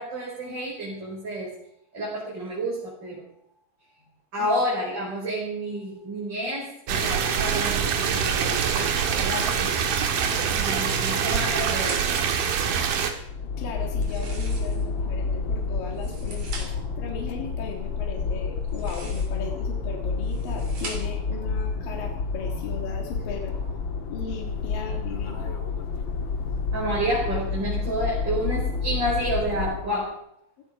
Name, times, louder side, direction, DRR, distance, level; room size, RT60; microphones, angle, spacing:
voice 1, 0.0-1.5 1.9-3.2 4.3-9.7 10.1-12.0 15.0-15.1 16.6-16.7 25.4-25.6 26.7-30.1, equal, 30° right, -5 dB, 5.8 m, -30 dB
sound 1, 6.9-13.1, right 7 dB, 75° right, 3.5 m, -24 dB
sound 2, 11.4-12.3 13.9-15.0 15.8-16.9 18.6-19.5 20.1-21.3, right 4 dB, 50° right, 4.2 m, -41 dB
sound 3, 12.7-30.0, left 4 dB, 50° left, 1.5 m, -29 dB
voice 2, 13.6-16.7 17.0-23.5 24.1-25.6, left 5 dB, 70° left, 1 dB, 3.4 m, -37 dB
17.0 x 16.0 x 5.1 m, 0.75 s
omnidirectional pair, 4.2 m